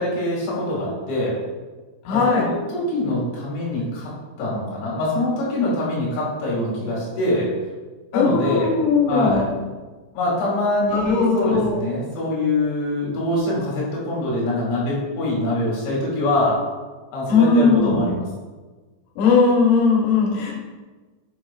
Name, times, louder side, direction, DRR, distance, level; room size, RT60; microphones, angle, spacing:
voice 1, 0.0-1.4 2.1-4.1 4.4-7.5 8.1-9.5 10.1-16.6 17.1-18.3, left 1 dB, 75° left, -5 dB, 4.5 m, -24 dB
voice 2, 2.1-2.5 8.1-9.5 10.9-11.8 17.3-18.1 19.2-20.5, left 4 dB, 90° left, -2 dB, 3.5 m, -18 dB
9.5 x 5.7 x 2.4 m, 1.3 s
omnidirectional pair, 5.3 m